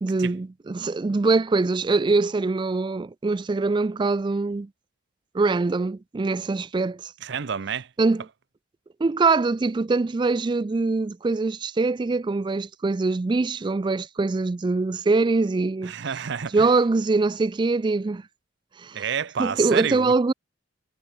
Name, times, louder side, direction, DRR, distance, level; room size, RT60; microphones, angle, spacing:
voice 1, 0.0-4.7 5.3-7.1 8.0-8.2 9.0-15.9 16.5-18.2 18.8-19.0 19.4-20.3, right 3 dB, 25° right, 0.3 m, -23 dB
voice 2, 7.2-7.9 15.8-16.7 18.9-20.1, right 7 dB, 60° right, 0.6 m, -29 dB
head